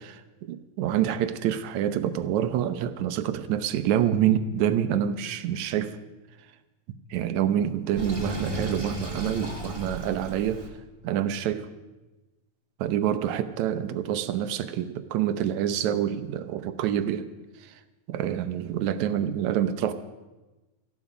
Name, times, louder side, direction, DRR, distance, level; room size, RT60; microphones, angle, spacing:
voice 1, 0.0-6.0 7.1-10.6 11.0-11.7 12.8-17.3 17.6-17.8 18.1-19.9, right 10 dB, 75° right, 11 dB, 2.1 m, -27 dB
Sink (filling or washing), 8.0-10.7, equal, 10° right, 1.9 m, -34 dB
18.5 x 15.0 x 4.9 m, 1.1 s
omnidirectional pair, 3.4 m